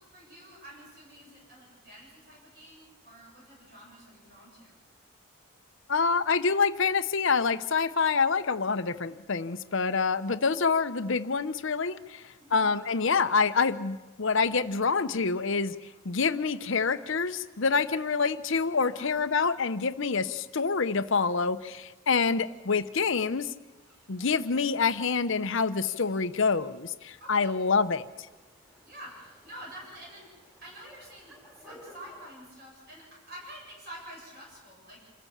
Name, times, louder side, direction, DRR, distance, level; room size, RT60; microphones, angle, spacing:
voice 1, 0.0-4.7 12.4-12.7 18.8-19.1 27.2-27.5 28.9-35.0, equal, 45° right, -3 dB, 7.9 m, -48 dB
voice 2, 5.9-15.7 16.0-23.5 24.1-28.0, left 5 dB, 55° left, 12 dB, 0.7 m, -27 dB
sound 1, 23.8-32.2, equal, 10° right, 6.8 m, -57 dB
27.5 x 14.5 x 7.3 m, 1.1 s
head